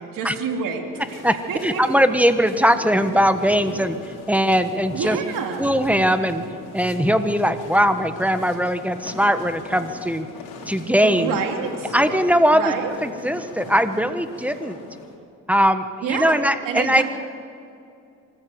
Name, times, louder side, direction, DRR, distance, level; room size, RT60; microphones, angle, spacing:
voice 1, 0.1-1.2 1.5-1.8 4.9-5.8 11.0-11.9 12.5-12.9 16.0-16.4 16.6-17.0, right 6 dB, 75° right, 3 dB, 2.8 m, -27 dB
sound 1, 0.9-15.2, left 3 dB, 90° left, 3.8 m, -39 dB
voice 2, 1.6-4.0 4.3-5.2 5.6-6.4 6.7-10.3 10.7-11.4 11.9-12.7 13.0-14.8 15.5-17.0, equal, 5° right, 9 dB, 1.2 m, -20 dB
25.0 x 14.0 x 7.9 m, 2.5 s
cardioid pair, 90°, 33 cm